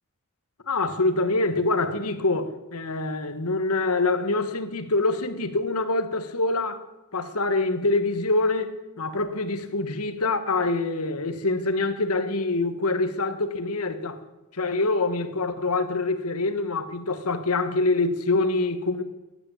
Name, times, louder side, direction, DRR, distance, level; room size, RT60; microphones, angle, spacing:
voice 1, 0.7-6.8 7.1-14.2 14.5-19.0, left 2 dB, 80° left, 1.6 m, -25 dB
16.5 x 9.9 x 8.7 m
head